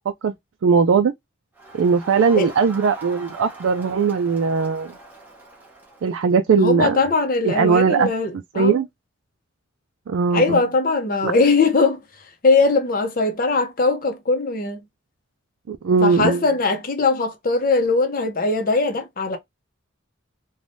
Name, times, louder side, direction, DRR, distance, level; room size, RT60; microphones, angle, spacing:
voice 1, 0.6-1.1 1.7-4.9 6.0-7.0 7.4-8.1 8.6-8.9 10.1-10.6 11.2-11.3 15.7-16.4, right 5 dB, 75° right, 0.4 m, -19 dB
Crowd, 1.5-6.4, right 2 dB, 10° right, 0.9 m, -41 dB
voice 2, 6.6-8.8 10.3-12.0 12.4-14.8 16.0-19.4, left 3 dB, 45° left, 0.6 m, -20 dB
3.3 x 2.2 x 2.6 m
head